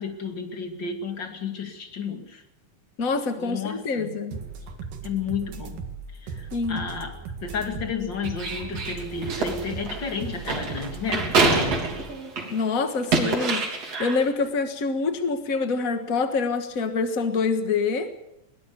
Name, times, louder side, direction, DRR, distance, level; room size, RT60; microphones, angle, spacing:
voice 1, 0.0-2.4 3.4-4.1 5.0-5.8 6.2-7.1 7.4-11.9, left 5 dB, 35° left, 5 dB, 2.5 m, -32 dB
voice 2, 3.0-4.4 6.5-6.9 12.5-18.1, left 4 dB, 55° left, 7 dB, 0.9 m, -26 dB
sound 1, 4.3-12.1, right 4 dB, 75° right, 3.6 m, -37 dB
sound 2, 8.2-12.6 12.9-14.2, right 3 dB, 50° right, 4.3 m, -26 dB
21.5 x 19.0 x 7.1 m, 0.85 s
omnidirectional pair, 3.9 m